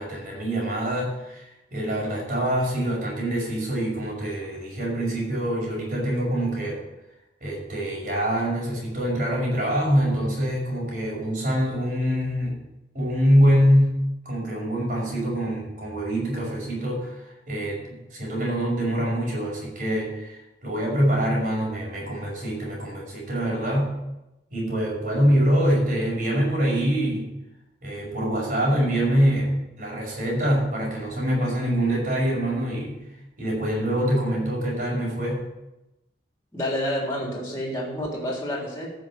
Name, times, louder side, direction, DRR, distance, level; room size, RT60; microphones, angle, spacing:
voice 1, 0.0-1.4 1.7-6.8 7.4-12.6 12.9-23.9 24.5-27.2 27.8-29.5 29.8-33.0 33.4-35.4, equal, 50° right, -3 dB, 5.8 m, -24 dB
voice 2, 36.5-38.9, left 1 dB, 15° left, -3 dB, 3.6 m, -29 dB
14.0 x 6.2 x 7.6 m, 0.96 s
head